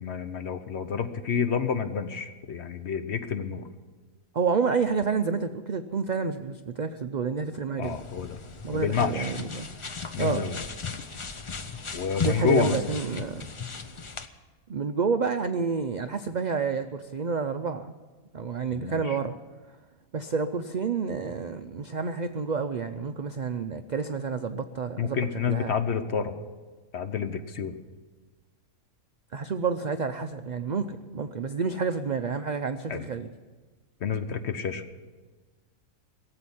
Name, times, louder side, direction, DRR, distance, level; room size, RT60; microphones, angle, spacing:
voice 1, 0.0-3.6 7.8-8.4 8.7-9.3 10.1-10.6 11.9-12.8 18.7-19.2 25.0-26.3 26.9-27.8 32.9-33.1 34.0-34.8, left 6 dB, 55° left, 10 dB, 1.1 m, -29 dB
voice 2, 4.3-8.0 8.6-9.7 10.2-10.4 12.2-13.5 14.7-17.9 18.3-19.3 20.1-25.7 29.3-33.3, right 5 dB, 85° right, 8 dB, 0.4 m, -29 dB
sound 1, 7.8-14.3, left 5 dB, 35° left, 0.4 m, -36 dB
17.0 x 7.9 x 9.9 m, 1.3 s
omnidirectional pair, 1.5 m